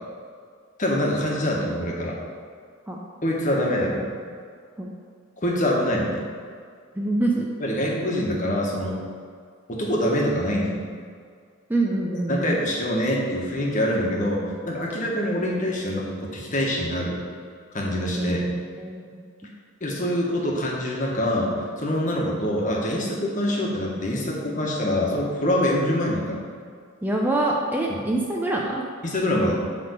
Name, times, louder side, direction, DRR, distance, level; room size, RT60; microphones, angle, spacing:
voice 1, 0.8-2.2 3.2-4.1 5.4-6.2 7.6-9.0 9.7-10.7 12.3-17.2 17.7-18.5 19.8-21.5 21.8-26.4 27.9-28.0 29.0-29.5, left 1 dB, 40° left, -2 dB, 1.3 m, -25 dB
voice 2, 6.9-7.5 11.7-12.6 18.2-19.0 27.0-28.8, right 2 dB, 10° right, -2 dB, 0.5 m, -25 dB
8.3 x 3.6 x 6.6 m, 2.1 s
head